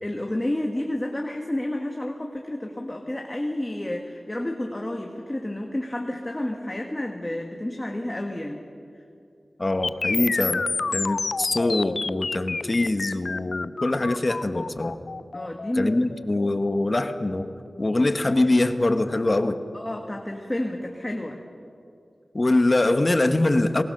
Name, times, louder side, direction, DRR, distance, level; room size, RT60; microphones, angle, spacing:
voice 1, 0.0-8.6 15.3-15.9 19.7-21.4, left 1 dB, 20° left, 2 dB, 1.6 m, -30 dB
voice 2, 9.6-10.6 10.9-15.0 15.8-19.6 22.3-23.8, left 2 dB, 40° left, 8 dB, 1.1 m, -23 dB
sound 1, 9.8-17.8, left 4 dB, 70° left, 0.4 m, -30 dB
24.0 x 19.5 x 6.7 m, 2.5 s
wide cardioid pair, 60°, 0 cm